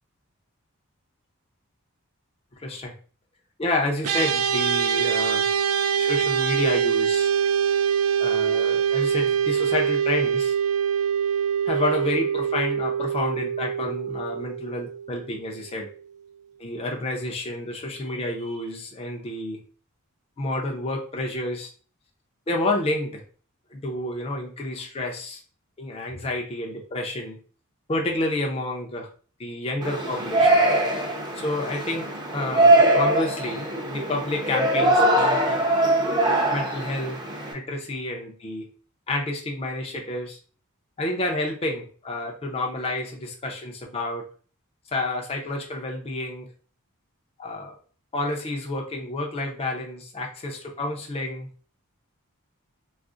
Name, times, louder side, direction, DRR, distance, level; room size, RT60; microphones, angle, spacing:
voice 1, 2.6-2.9 3.6-5.5 6.0-7.3 8.2-10.6 11.6-15.9 16.6-19.6 20.4-21.7 22.5-23.2 23.7-25.4 25.8-27.4 27.9-29.1 29.4-30.7 31.4-35.6 36.5-37.2 37.5-38.7 39.1-40.4 41.0-44.2 44.9-46.5 47.4-47.7 48.1-51.5, left 2 dB, 25° left, 0 dB, 0.5 m, -29 dB
sound 1, 4.0-15.5, right 7 dB, 70° right, 0.3 m, -24 dB
Yell, 29.8-37.5, right 1 dB, 20° right, 0.6 m, -22 dB
2.4 x 2.0 x 3.6 m, 0.41 s
head